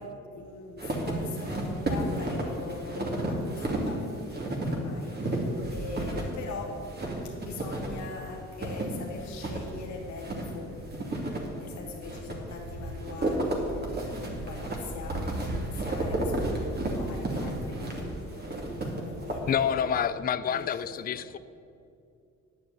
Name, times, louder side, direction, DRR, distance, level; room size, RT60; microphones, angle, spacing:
voice 1, 0.0-6.9 7.2-19.9 20.5-21.3, left 4 dB, 70° left, 1 dB, 1.6 m, -42 dB
sound 1, 0.8-19.9, right 1 dB, 35° right, 2.5 m, -33 dB
voice 2, 19.5-21.4, left 8 dB, 30° left, 14 dB, 0.4 m, -28 dB
10.0 x 6.8 x 8.8 m, 2.5 s
cardioid pair, 90°, 30 cm